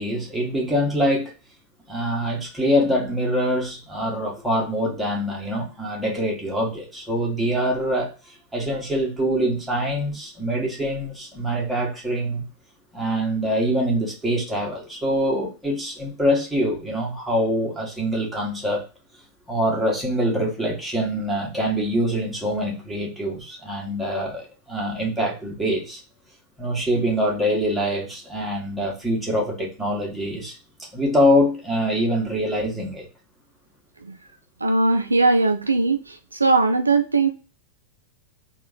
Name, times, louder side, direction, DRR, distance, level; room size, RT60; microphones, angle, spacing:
voice 1, 0.0-1.3 1.9-12.5 12.9-18.8 19.5-26.0 26.6-30.5 30.9-33.0, equal, 5° right, 1.5 m, -24 dB
voice 2, 34.6-37.3, right 3 dB, 80° right, 0.4 m, -20 dB
3.7 x 2.5 x 3.8 m
figure-of-eight pair, 90°, 0 cm